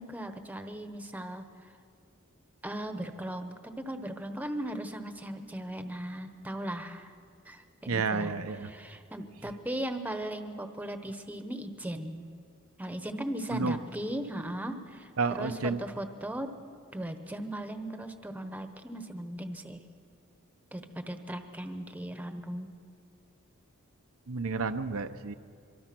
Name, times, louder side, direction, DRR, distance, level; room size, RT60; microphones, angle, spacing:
voice 1, 0.0-1.5 2.6-7.1 7.4-8.3 8.6-12.4 12.8-15.1 15.3-16.5 16.9-19.8 20.7-22.7, right 1 dB, 5° right, 7 dB, 1.1 m, -38 dB
voice 2, 7.9-8.7 13.5-13.8 15.2-15.8 24.3-25.3, right 4 dB, 75° right, 8 dB, 0.8 m, -30 dB
24.5 x 23.5 x 6.1 m, 2.3 s
head